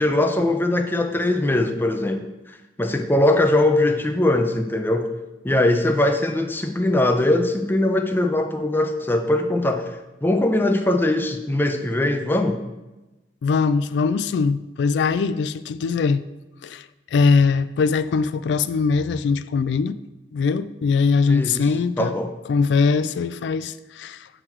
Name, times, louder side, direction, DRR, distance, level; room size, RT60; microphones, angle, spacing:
voice 1, 0.0-2.2 2.5-5.1 5.4-10.0 10.2-12.6 21.3-21.7 22.0-22.3, left 1 dB, 10° left, 0.5 m, -21 dB
voice 2, 13.4-16.2 16.6-16.9 17.1-20.0 20.3-22.2 22.5-24.3, left 5 dB, 70° left, 0.3 m, -21 dB
7.8 x 3.9 x 4.5 m
head